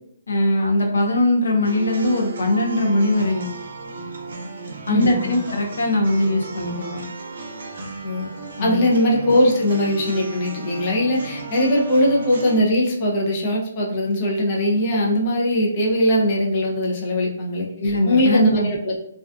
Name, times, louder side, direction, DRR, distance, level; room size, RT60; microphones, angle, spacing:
voice 1, 0.3-3.5 4.9-7.0 8.6-8.8 17.8-18.7, left 1 dB, 80° left, 1 dB, 0.6 m, -21 dB
sound 1, 1.6-12.6, right 3 dB, 70° right, 0.5 m, -35 dB
voice 2, 4.9-5.4 8.0-8.3 8.6-18.9, left 1 dB, 35° left, -3 dB, 0.5 m, -20 dB
2.4 x 2.2 x 2.3 m, 0.73 s
hypercardioid pair, 160°, 0 cm